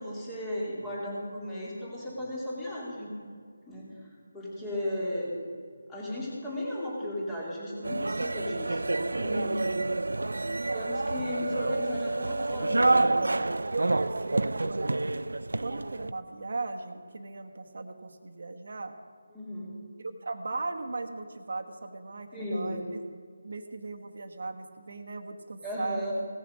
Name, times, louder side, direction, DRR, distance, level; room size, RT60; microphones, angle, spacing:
voice 1, 0.0-3.1 3.7-5.4 5.9-9.7 10.7-13.2 19.3-20.0 22.3-22.8 25.6-26.1, left 1 dB, 10° left, -5 dB, 2.5 m, -35 dB
sound 1, 7.8-16.1, right 2 dB, 85° right, 0.4 m, -28 dB
voice 2, 10.2-11.1 13.7-15.3 15.6-18.9 20.0-23.0 23.4-26.0, right 3 dB, 60° right, 6 dB, 1.2 m, -38 dB
17.0 x 7.0 x 6.3 m, 2.1 s
figure-of-eight pair, 165°, 0 cm